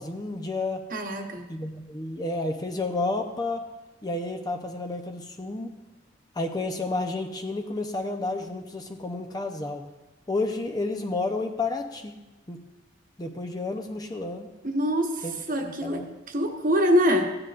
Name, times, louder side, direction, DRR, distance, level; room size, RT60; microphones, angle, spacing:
voice 1, 0.0-0.8 1.5-3.6 4.0-5.7 6.4-9.8 10.3-12.1 12.5-12.6 13.2-14.5 15.2-15.3 15.6-16.1, left 2 dB, 20° left, 4 dB, 0.6 m, -31 dB
voice 2, 0.9-1.5 14.6-17.3, equal, 45° right, 3 dB, 1.1 m, -25 dB
14.5 x 9.7 x 2.5 m, 1.1 s
head